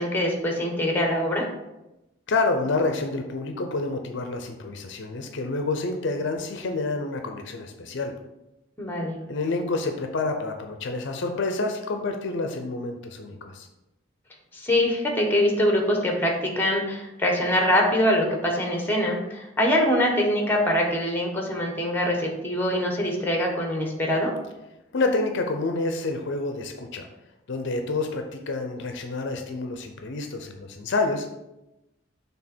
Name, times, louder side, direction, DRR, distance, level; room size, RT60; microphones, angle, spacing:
voice 1, 0.0-1.5 8.8-9.2 14.5-24.3, left 1 dB, 10° left, 1 dB, 1.0 m, -24 dB
voice 2, 2.3-8.2 9.3-13.7 24.9-27.1 27.5-31.3, left 3 dB, 60° left, 5 dB, 0.5 m, -28 dB
6.4 x 3.4 x 4.3 m, 0.94 s
head